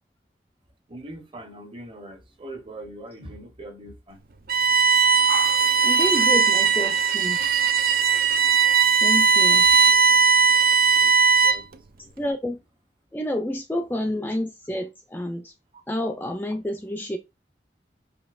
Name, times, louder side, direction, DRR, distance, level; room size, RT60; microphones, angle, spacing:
voice 1, 0.9-4.2 9.3-9.9 11.0-11.1 11.4-12.1, right 1 dB, 30° right, 0.7 m, -42 dB
Bowed string instrument, 4.5-11.7, right 5 dB, 55° right, 0.4 m, -18 dB
voice 2, 5.3-7.4 9.0-9.7 12.2-12.6 13.1-15.5 15.9-17.2, left 1 dB, 10° left, 0.4 m, -29 dB
5.2 x 2.8 x 2.4 m
head